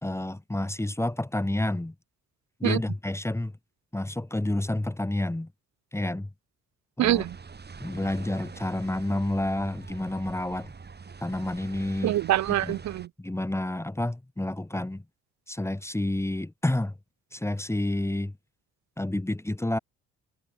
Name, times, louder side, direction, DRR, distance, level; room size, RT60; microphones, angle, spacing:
voice 1, 0.0-1.9 2.6-3.5 3.9-5.5 5.9-6.3 7.0-7.2 7.8-10.7 11.2-12.2 12.6-12.7 13.2-15.0 15.5-16.9 17.3-18.3 19.0-19.8, left 1 dB, 10° left, 2.2 m, -29 dB
sound 1, 7.0-13.1, right 5 dB, 35° right, 5.7 m, -44 dB
voice 2, 7.0-7.4 12.0-13.1, right 14 dB, 65° right, 0.7 m, -25 dB
cardioid pair, 90°, 30 cm